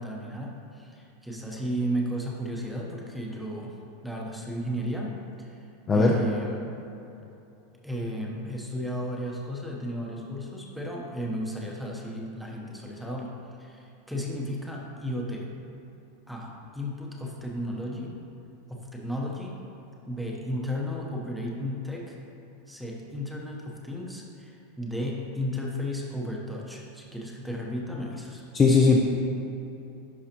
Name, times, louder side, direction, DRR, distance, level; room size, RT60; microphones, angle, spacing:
voice 1, 0.0-3.7 4.0-5.6 5.9-6.6 7.8-13.3 13.6-15.5 16.3-18.1 18.7-19.6 20.1-22.2 22.7-28.4, equal, ahead, -2 dB, 0.8 m, -34 dB
voice 2, 5.9-6.2 28.5-29.0, left 4 dB, 20° left, -1 dB, 0.5 m, -18 dB
11.0 x 4.8 x 2.9 m, 2.9 s
supercardioid pair, 150°, 0 cm